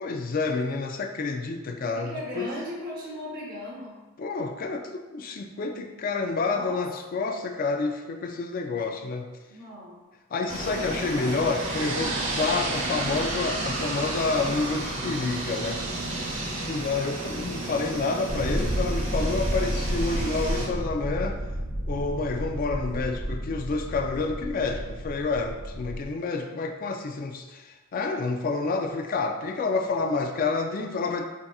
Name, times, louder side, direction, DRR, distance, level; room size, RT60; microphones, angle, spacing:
voice 1, 0.0-2.5 4.2-9.3 10.3-15.8 16.6-21.4 21.8-31.3, left 3 dB, 40° left, 5 dB, 0.3 m, -29 dB
voice 2, 2.0-4.0 6.4-6.8 9.5-10.0, left 1 dB, 45° right, -5 dB, 0.9 m, -37 dB
sound 1, 10.5-20.7, right 2 dB, 75° right, 1.0 m, -31 dB
sound 2, 18.3-26.1, equal, 55° left, 1.1 m, -31 dB
4.6 x 2.8 x 2.3 m, 1.2 s
head